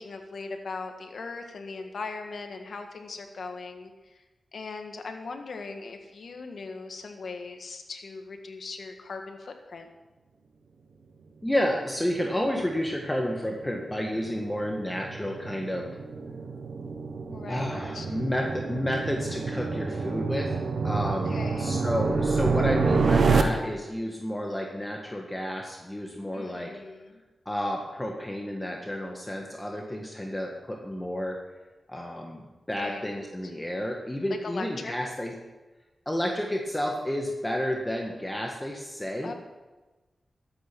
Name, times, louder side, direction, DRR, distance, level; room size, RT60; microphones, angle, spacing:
voice 1, 0.0-4.2 4.5-9.9 17.3-18.1 21.0-21.7 26.3-27.2 32.8-33.2 34.4-35.1 39.2-39.3, left 4 dB, 75° left, 5 dB, 1.6 m, -39 dB
voice 2, 11.4-16.0 17.5-26.7 27.5-31.4 31.9-35.3 36.1-39.3, equal, 15° left, 0 dB, 1.7 m, -31 dB
sound 1, 12.3-23.4, right 4 dB, 80° right, 1.2 m, -28 dB
13.0 x 8.8 x 6.1 m, 1.2 s
cardioid pair, 55°, 0 cm